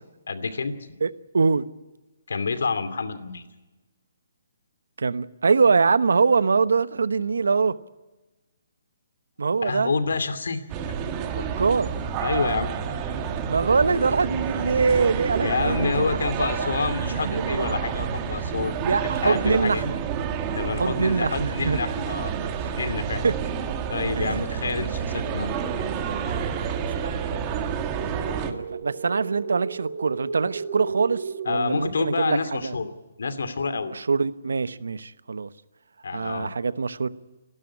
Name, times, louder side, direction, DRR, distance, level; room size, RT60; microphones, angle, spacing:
voice 1, 0.3-0.7 2.3-3.4 9.6-10.6 12.2-12.7 15.4-18.8 19.2-19.9 20.5-22.3 22.7-23.2 23.9-25.5 31.4-32.9 33.2-33.9 36.0-36.5, left 4 dB, 80° left, 11 dB, 2.6 m, -28 dB
voice 2, 1.0-1.7 5.0-7.7 9.4-9.9 11.2-11.9 13.5-16.1 16.4-16.7 17.1-17.7 18.8-20.0 20.8-21.8 22.6-22.7 23.2-23.3 24.2-24.4 27.0-27.7 28.5-32.4 32.6-32.7 33.9-35.5 36.1-37.1, right 4 dB, 85° right, 16 dB, 1.0 m, -24 dB
sound 1, 10.7-28.5, right 7 dB, 25° right, 1.7 m, -29 dB
sound 2, 26.6-31.6, right 5 dB, 55° right, 1.5 m, -35 dB
28.5 x 12.5 x 9.8 m, 1.1 s
hypercardioid pair, 155°, 0 cm